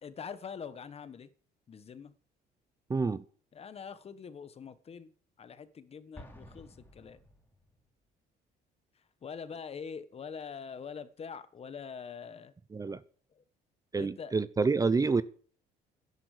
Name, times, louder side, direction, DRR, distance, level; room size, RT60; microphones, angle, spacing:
voice 1, 0.0-1.3 1.7-2.1 3.5-5.1 5.4-7.2 9.2-12.5 13.3-13.4 13.9-14.3, left 6 dB, 35° left, 1.3 m, -44 dB
voice 2, 2.9-3.2 12.7-13.0 13.9-15.2, right 4 dB, 20° right, 0.7 m, -28 dB
Explosion, 6.1-7.9, left 1 dB, 10° left, 3.2 m, -52 dB
12.0 x 11.0 x 6.6 m
cardioid pair, 110°, 17 cm